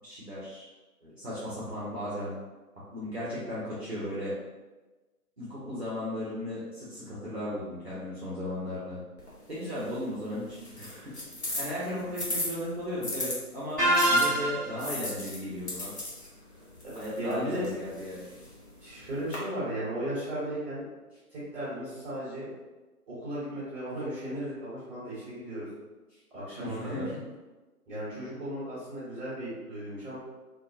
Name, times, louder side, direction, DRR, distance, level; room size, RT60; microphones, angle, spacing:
voice 1, 0.0-0.7 1.0-2.3 2.9-4.3 5.4-9.0 9.5-11.1 11.6-15.9 16.9-18.2 26.6-27.2, left 1 dB, 40° right, -9 dB, 0.7 m, -36 dB
sound 1, 9.2-13.4 13.9-19.4, left 1 dB, 45° left, 0.7 m, -38 dB
sound 2, 13.8-14.8, right 1 dB, 15° left, 0.8 m, -24 dB
voice 2, 16.5-17.6 18.8-20.8 21.3-22.5 23.1-25.7 26.3-27.0 27.9-30.2, right 1 dB, 5° right, -16 dB, 1.2 m, -36 dB
2.7 x 2.2 x 2.3 m, 1.2 s
figure-of-eight pair, 150°, 47 cm